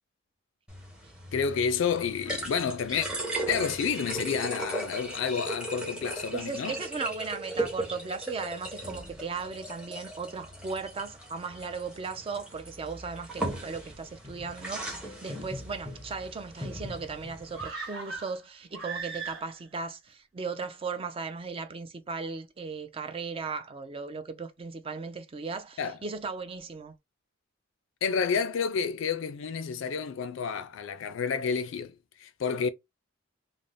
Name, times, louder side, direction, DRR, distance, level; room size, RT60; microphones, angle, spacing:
sound 1, 0.7-17.7, right 1 dB, 5° right, 0.7 m, -38 dB
voice 1, 1.3-3.1 3.5-6.8 25.8-26.0 28.0-32.7, left 6 dB, 65° left, 0.4 m, -30 dB
voice 2, 6.3-26.9, right 4 dB, 25° right, 0.3 m, -37 dB
sound 2, 17.5-19.8 20.1-20.2, right 5 dB, 85° right, 1.2 m, -38 dB
2.5 x 2.0 x 3.2 m
head